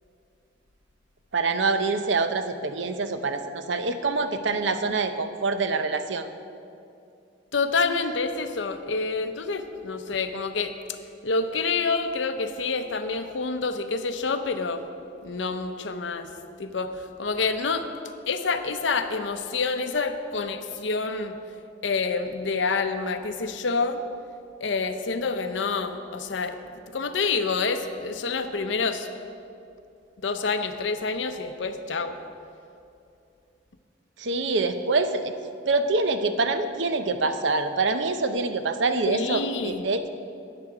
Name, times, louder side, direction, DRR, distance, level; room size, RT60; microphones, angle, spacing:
voice 1, 1.3-6.3 34.2-35.3 35.7-40.1, right 3 dB, 75° right, 9 dB, 0.7 m, -25 dB
voice 2, 7.5-10.7 11.2-14.8 15.2-16.3 16.6-17.9 18.3-21.3 21.8-24.0 24.6-26.6 26.9-29.1 30.2-32.2 39.1-39.8, left 4 dB, 80° left, 8 dB, 0.7 m, -27 dB
13.0 x 9.0 x 4.8 m, 2.6 s
head